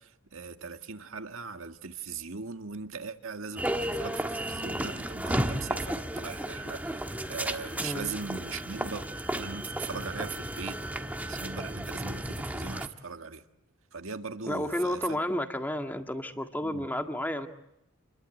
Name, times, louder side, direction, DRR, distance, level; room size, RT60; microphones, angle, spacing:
voice 1, 0.0-9.1 9.4-13.4 13.9-15.0 16.6-16.9, right 5 dB, 70° right, 1.8 m, -40 dB
sound 1, 3.6-12.9, right 1 dB, 5° right, 1.4 m, -33 dB
voice 2, 7.8-8.1 14.4-17.5, left 1 dB, 10° left, 1.9 m, -31 dB
29.0 x 22.0 x 9.1 m
head